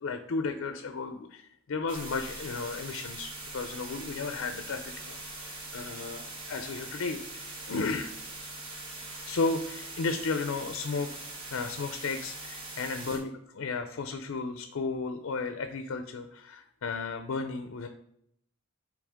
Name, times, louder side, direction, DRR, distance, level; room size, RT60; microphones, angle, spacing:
voice 1, 0.0-7.2 7.7-8.1 9.1-11.1 11.5-17.9, left 4 dB, 65° left, 7 dB, 0.5 m, -34 dB
sound 1, 1.9-13.2, right 2 dB, 75° right, 2.0 m, -42 dB
8.5 x 3.3 x 3.5 m, 0.73 s
head